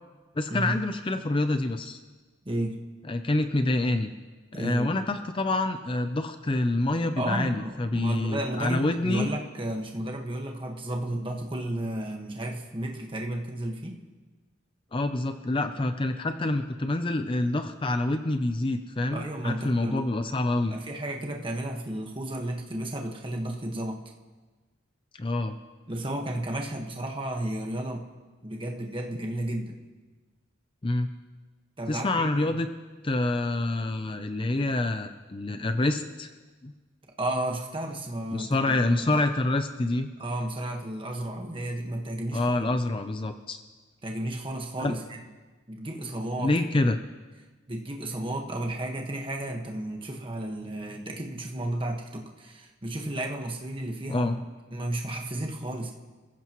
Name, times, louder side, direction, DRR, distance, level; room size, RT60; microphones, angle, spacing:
voice 1, 0.4-2.0 3.1-4.1 4.5-9.3 14.9-20.8 25.2-25.6 30.8-31.1 31.9-32.7 33.0-36.3 36.6-36.7 38.3-40.1 42.3-43.6 44.8-44.9 46.4-47.0 54.1-54.4, left 2 dB, 25° left, 8 dB, 0.5 m, -27 dB
voice 2, 2.4-2.8 4.5-4.9 7.2-14.0 19.1-20.0 20.7-24.0 25.9-28.1 28.4-29.8 31.8-32.6 37.2-39.2 40.2-42.7 44.0-45.2 45.7-46.5 46.8-46.9 47.7-54.4 54.7-55.9, right 1 dB, 25° right, 1 dB, 1.5 m, -33 dB
28.5 x 15.5 x 3.1 m, 1.3 s
head